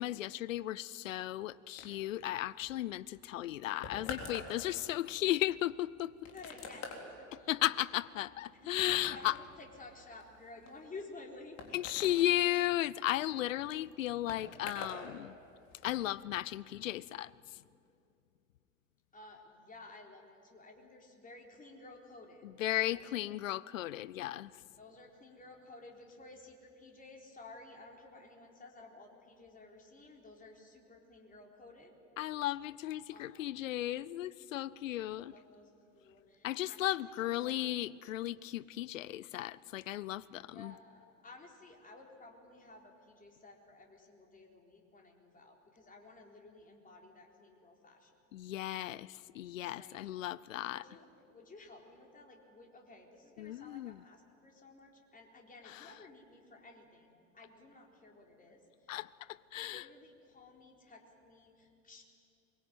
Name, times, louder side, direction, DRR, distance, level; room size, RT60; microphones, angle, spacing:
voice 1, 0.0-6.3 7.5-9.4 11.7-15.4 15.8-17.6 22.4-24.5 32.2-35.3 36.4-40.7 48.3-50.8 53.4-54.0 55.6-55.9 58.9-59.8, left 14 dB, 70° left, 0.7 m, -35 dB
sound 1, 1.8-15.1 15.3-16.0, left 4 dB, 45° left, 4.0 m, -48 dB
voice 2, 6.3-6.9 7.2-7.5 8.5-8.7 9.1-11.8 12.1-12.2 19.1-22.5 22.9-23.1 24.8-32.0 33.1-33.5 35.1-37.8 40.5-48.1 49.8-50.1 50.7-58.9 59.6-62.0, left 2 dB, 20° left, 4.1 m, -54 dB
23.0 x 22.5 x 9.3 m
figure-of-eight pair, 75°, 41 cm